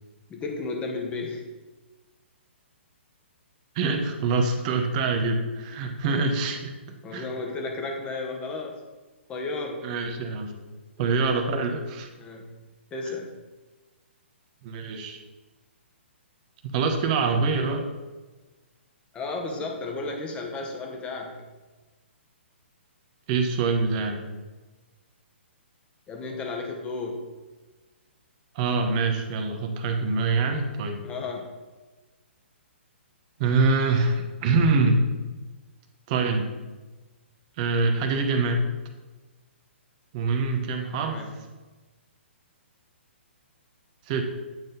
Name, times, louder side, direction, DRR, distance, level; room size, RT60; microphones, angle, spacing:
voice 1, 0.3-1.5 5.8-5.9 7.0-8.8 9.3-9.9 12.2-12.5 12.9-13.3 19.1-21.4 26.1-27.3 31.0-31.5 41.0-41.3, left 3 dB, 15° left, 2 dB, 1.0 m, -33 dB
voice 2, 3.7-6.7 7.1-7.2 9.8-10.6 11.0-12.1 14.6-15.2 16.6-17.9 23.3-24.2 28.5-31.0 33.4-35.2 36.1-36.5 37.6-38.6 40.1-41.2 44.1-44.2, right 3 dB, 35° right, 5 dB, 0.9 m, -25 dB
8.8 x 3.8 x 3.9 m, 1.2 s
figure-of-eight pair, 130°, 7 cm